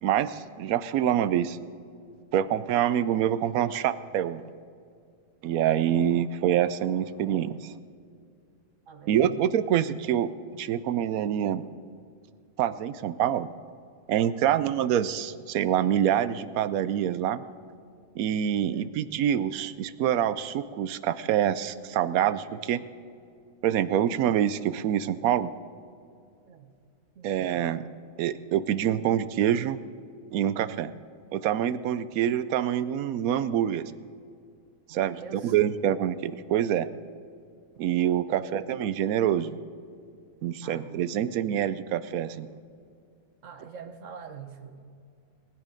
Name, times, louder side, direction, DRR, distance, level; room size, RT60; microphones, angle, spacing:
voice 1, 0.0-1.6 2.3-4.4 5.4-7.7 9.1-10.3 10.6-11.6 12.6-13.5 14.1-17.4 18.2-22.8 23.6-25.5 27.2-27.9 28.2-29.8 30.3-30.9 31.3-33.9 34.9-36.9 37.8-39.6 40.4-42.5, right 10 dB, 80° right, 15 dB, 1.0 m, -26 dB
voice 2, 8.9-9.4 18.6-19.0 26.4-26.7 27.1-27.4 34.9-35.5 38.3-38.7 40.6-40.9 41.1-41.3 43.4-44.8, right 6 dB, 60° right, 7 dB, 1.4 m, -44 dB
19.5 x 9.8 x 5.1 m, 2.3 s
omnidirectional pair, 1.5 m